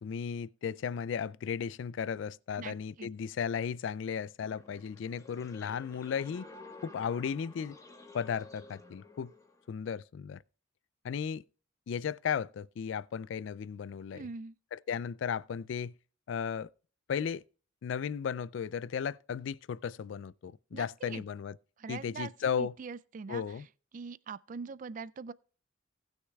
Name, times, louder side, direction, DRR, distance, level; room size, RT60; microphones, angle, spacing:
voice 1, 0.0-6.5 6.8-7.8 8.1-9.3 9.7-10.4 11.0-11.4 11.9-14.3 14.7-15.9 16.3-16.7 17.1-17.4 17.8-21.6 21.9-22.7 23.3-23.6, left 7 dB, 65° left, 0.3 m, -35 dB
voice 2, 2.6-3.1 14.1-14.6 20.7-21.2 21.8-23.4 23.9-25.3, right 5 dB, 40° right, 0.3 m, -43 dB
sound 1, 4.4-9.7, left 2 dB, 15° left, 1.3 m, -52 dB
18.5 x 6.5 x 2.3 m
head